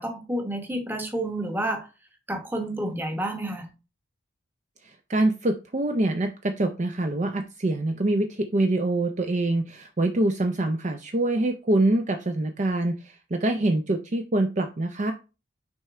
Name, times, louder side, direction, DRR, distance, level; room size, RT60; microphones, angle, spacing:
voice 1, 0.0-1.9 2.3-3.7, right 1 dB, 10° right, 0.9 m, -29 dB
voice 2, 4.8-15.1, right 2 dB, 35° right, 0.5 m, -25 dB
6.2 x 4.3 x 3.7 m
head